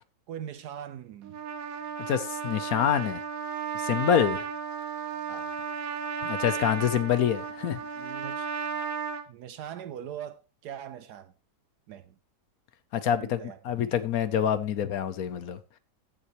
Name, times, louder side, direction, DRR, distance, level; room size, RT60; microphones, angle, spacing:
voice 1, 0.3-1.4 5.3-5.5 8.0-8.5 9.3-11.3 11.9-12.1 13.1-13.9, right 9 dB, 70° right, 1.1 m, -41 dB
Trumpet, 1.2-9.2, right 6 dB, 55° right, 1.5 m, -34 dB
voice 2, 2.1-3.2 3.8-4.5 6.2-7.8 12.9-13.4 13.6-15.6, left 9 dB, 65° left, 1.1 m, -26 dB
15.5 x 7.1 x 3.0 m
omnidirectional pair, 1.9 m